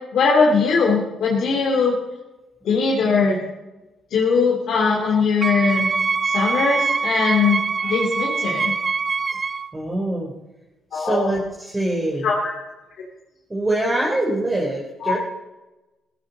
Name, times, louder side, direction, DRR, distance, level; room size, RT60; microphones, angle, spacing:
voice 1, 0.1-1.9 2.6-3.4 4.1-5.9 6.2-8.7 10.9-11.3 12.2-12.5 15.0-15.1, left 4 dB, 70° left, -2 dB, 3.0 m, -20 dB
Wind instrument woodwind instrument, 5.4-9.7, right 4 dB, 35° right, 0.6 m, -23 dB
voice 2, 9.7-10.3 10.9-12.3 13.5-15.2, right 1 dB, 15° right, -3 dB, 3.6 m, -24 dB
16.0 x 15.0 x 4.0 m, 1.0 s
cardioid pair, 90°, 0 cm